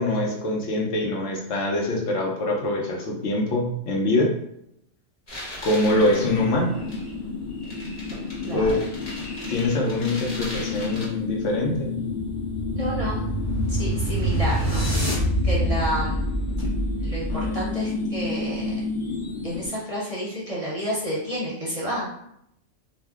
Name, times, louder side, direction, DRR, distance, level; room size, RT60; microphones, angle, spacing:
voice 1, 0.0-4.3 5.6-6.7 8.5-8.8 9.5-12.0, left 1 dB, 75° left, -1 dB, 1.0 m, -24 dB
sound 1, 5.3-11.1, left 1 dB, 35° left, 1.1 m, -39 dB
sound 2, 5.8-19.7, left 4 dB, 55° left, 0.6 m, -31 dB
voice 2, 5.9-6.3 8.4-8.7 12.7-13.3 13.7-14.9 15.4-16.2 17.0-18.7 19.4-22.1, equal, 35° right, -5 dB, 0.6 m, -30 dB
sound 3, 12.0-17.8, right 1 dB, 15° left, 0.8 m, -26 dB
2.6 x 2.1 x 3.5 m, 0.76 s
omnidirectional pair, 1.3 m